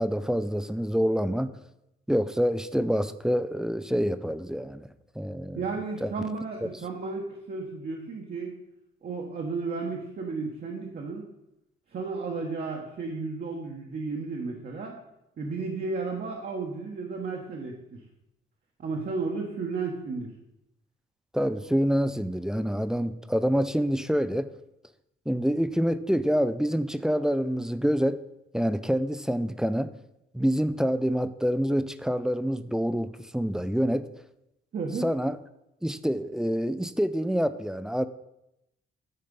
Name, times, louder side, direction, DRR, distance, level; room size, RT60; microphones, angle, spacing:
voice 1, 0.0-1.5 2.1-4.9 5.2-5.6 6.0-6.1 21.3-24.5 25.3-28.2 28.5-29.9 30.3-34.1 35.0-35.4 35.8-38.1, equal, 5° right, 13 dB, 0.4 m, -26 dB
voice 2, 5.5-8.6 9.0-11.3 11.9-14.9 15.4-18.0 18.8-20.3 34.7-35.1, right 4 dB, 50° right, 0 dB, 1.3 m, -33 dB
10.0 x 4.3 x 5.3 m, 0.87 s
cardioid pair, 90°, 20 cm